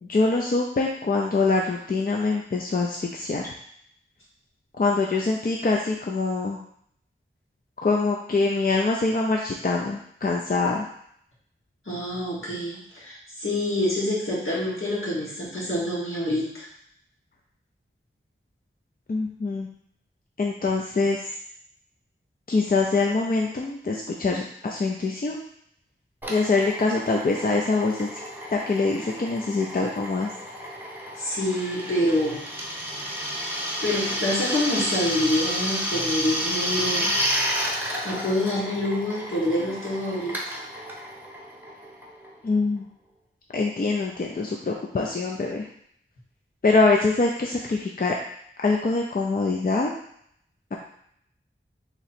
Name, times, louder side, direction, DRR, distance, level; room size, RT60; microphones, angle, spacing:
voice 1, 0.0-3.5 4.8-6.6 7.8-10.9 19.1-19.7 20.4-21.4 22.5-25.4 26.3-28.1 28.5-30.3 42.4-42.9 43.5-45.7 46.6-48.2 48.6-49.9, left 3 dB, 45° left, 0 dB, 0.4 m, -24 dB
voice 2, 11.9-12.8 13.0-16.7 31.2-32.4 33.8-37.1 38.0-40.6, left 1 dB, 75° left, -6 dB, 1.4 m, -26 dB
Drill, 26.2-42.5, equal, 10° right, 0.8 m, -31 dB
3.0 x 2.7 x 4.2 m, 0.68 s
wide cardioid pair, 50°, 21 cm